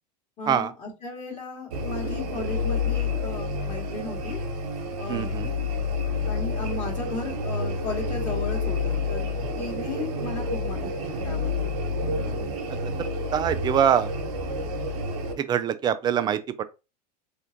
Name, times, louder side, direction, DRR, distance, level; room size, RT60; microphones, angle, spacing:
voice 1, 0.4-4.4 5.0-5.3 6.2-9.3 9.6-11.7, left 3 dB, 30° left, 2.2 m, -35 dB
sound 1, 1.7-15.3, left 3 dB, 60° right, 1.1 m, -29 dB
voice 2, 5.1-5.5 13.3-14.1 15.4-16.6, right 9 dB, 20° right, 0.3 m, -24 dB
4.2 x 3.6 x 2.8 m
figure-of-eight pair, 85°, 21 cm